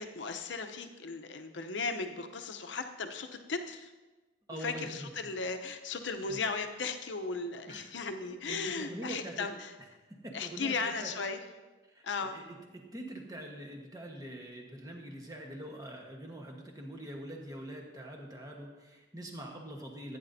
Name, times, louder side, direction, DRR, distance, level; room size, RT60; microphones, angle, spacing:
voice 1, 0.0-3.9 4.6-9.7 10.3-11.4 12.0-12.4, left 4 dB, 75° left, 6 dB, 0.8 m, -36 dB
voice 2, 4.5-5.3 6.3-6.4 7.7-7.9 8.5-9.5 10.2-11.1 11.9-20.2, right 1 dB, 20° right, 1 dB, 1.2 m, -44 dB
15.0 x 9.4 x 2.7 m, 1.2 s
head